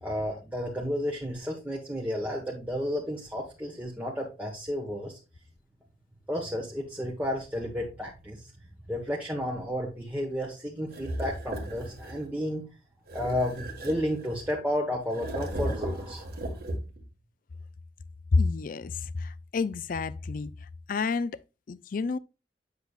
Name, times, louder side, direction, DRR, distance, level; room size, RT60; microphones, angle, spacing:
voice 1, 0.0-5.2 6.3-8.5 8.9-12.7 13.1-16.3, equal, 10° right, 1.2 m, -32 dB
sound 1, 10.9-12.3 13.1-14.6 15.1-17.1, right 1 dB, 60° right, 1.6 m, -36 dB
voice 2, 18.3-20.5 20.9-21.4 21.7-22.2, left 4 dB, 50° left, 0.4 m, -29 dB
8.1 x 6.8 x 2.4 m
head